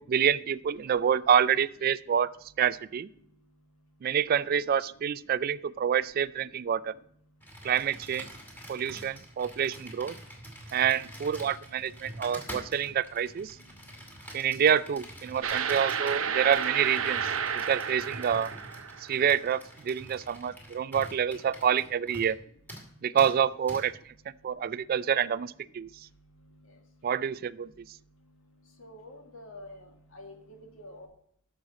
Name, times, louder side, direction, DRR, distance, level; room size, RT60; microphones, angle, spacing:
voice 1, 0.0-2.3 2.6-3.1 4.0-6.9 7.6-8.3 8.7-10.1 10.7-13.6 14.3-18.5 19.0-22.4 23.0-23.9 24.4-25.9 27.0-27.7, right 8 dB, 45° right, 18 dB, 0.3 m, -27 dB
Computer keyboard, 7.4-22.4 22.7-22.9 23.2-23.3 23.7-23.8, equal, 10° left, 2.5 m, -46 dB
sound 1, 15.4-19.3, right 7 dB, 80° right, 0.7 m, -31 dB
voice 2, 28.8-29.9 30.1-31.1, left 1 dB, 80° left, 3 dB, 1.9 m, -47 dB
13.5 x 6.3 x 4.1 m, 0.69 s
head